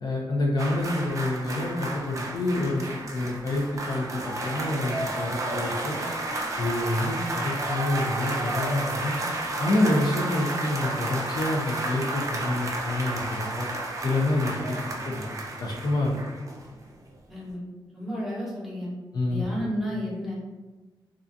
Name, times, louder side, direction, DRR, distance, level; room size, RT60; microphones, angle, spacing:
voice 1, 0.0-2.8 3.1-6.0 6.6-9.2 9.6-13.7 14.0-14.8 15.1-15.2 15.6-16.2 19.1-19.4, left 2 dB, 50° left, -2 dB, 0.4 m, -27 dB
sound 1, 0.6-16.9 17.1-17.3, right 2 dB, 40° right, 0.3 m, -32 dB
voice 2, 17.3-17.6 17.9-18.9 19.3-20.3, equal, ahead, -7 dB, 0.8 m, -32 dB
2.3 x 2.3 x 2.5 m, 1.2 s
wide cardioid pair, 125°, 9 cm